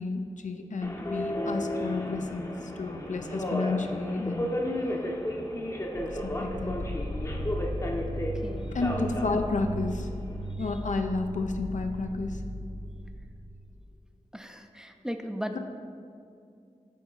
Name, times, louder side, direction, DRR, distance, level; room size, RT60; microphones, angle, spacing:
voice 1, 0.0-4.5 6.2-6.8 8.7-10.1 10.6-12.4, left 3 dB, 75° left, 5 dB, 0.5 m, -31 dB
Subway metro underground, 0.8-10.5, left 1 dB, 25° left, 0.7 m, -34 dB
sound 1, 6.0-13.8, equal, 70° right, 0.4 m, -36 dB
voice 2, 8.4-8.8 14.3-15.6, equal, 5° right, 6 dB, 0.4 m, -36 dB
8.4 x 3.9 x 3.9 m, 2.4 s
wide cardioid pair, 55°, 13 cm